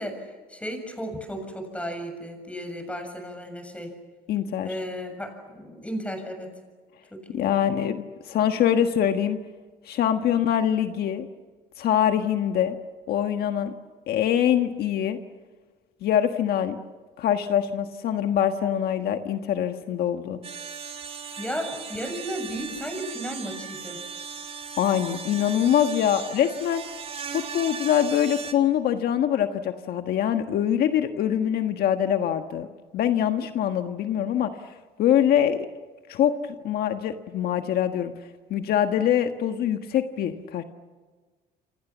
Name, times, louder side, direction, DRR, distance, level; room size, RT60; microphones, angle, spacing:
voice 1, 0.0-3.9 4.6-6.5 7.1-7.5 21.4-24.0, equal, 5° left, 5 dB, 7.2 m, -34 dB
voice 2, 4.3-4.7 7.3-9.4 9.8-11.3 11.8-12.8 13.1-13.7 14.1-15.2 16.0-16.8 17.2-20.4 24.8-26.8 27.3-32.7 32.9-35.7 36.1-38.1 38.5-40.6, left 10 dB, 65° left, 7 dB, 1.5 m, -24 dB
sound 1, 20.4-28.5, right 6 dB, 35° right, 3.2 m, -37 dB
28.5 x 27.0 x 7.3 m, 1.4 s
cardioid pair, 110°, 17 cm